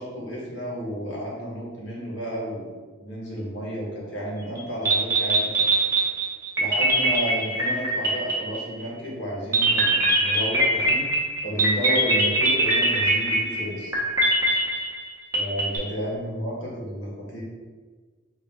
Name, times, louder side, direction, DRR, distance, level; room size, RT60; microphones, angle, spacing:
voice 1, 0.0-2.7 3.0-5.7 6.6-11.0 11.4-14.0 15.3-17.4, equal, 65° left, -5 dB, 1.4 m, -32 dB
sound 1, 4.6-4.7 4.9-8.8 9.5-15.8, right 2 dB, 15° right, 0.9 m, -22 dB
4.0 x 2.3 x 4.4 m, 1.4 s
head